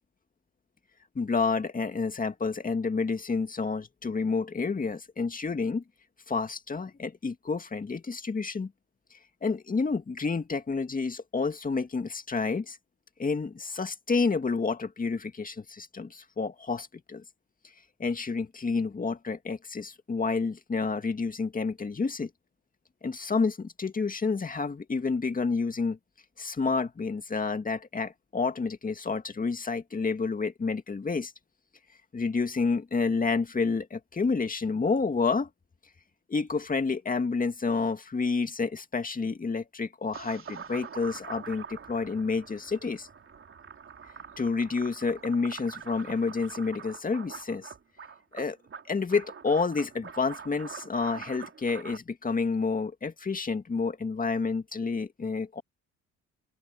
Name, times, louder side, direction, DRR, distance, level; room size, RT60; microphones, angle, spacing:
voice 1, 1.2-5.8 6.3-8.7 9.4-12.8 13.2-17.2 18.0-22.3 23.0-26.0 26.4-31.3 32.1-35.5 36.3-43.1 44.4-47.7 48.3-48.6 48.9-55.6, left 4 dB, 30° left, 2.1 m, -29 dB
sound 1, 40.1-52.0, right 6 dB, 45° right, 3.1 m, -44 dB
open air
cardioid pair, 90°, 30 cm